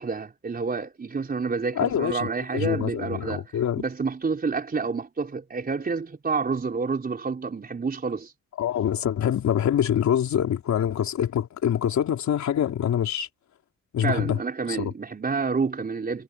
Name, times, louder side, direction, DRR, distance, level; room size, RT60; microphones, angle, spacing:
voice 1, 0.0-3.5 3.8-8.3 14.0-16.2, right 4 dB, 30° right, 4.3 m, -29 dB
voice 2, 1.8-3.8 8.6-13.3 13.9-14.4 14.7-14.9, left 9 dB, 65° left, 3.9 m, -25 dB
cardioid pair, 90°, 30 cm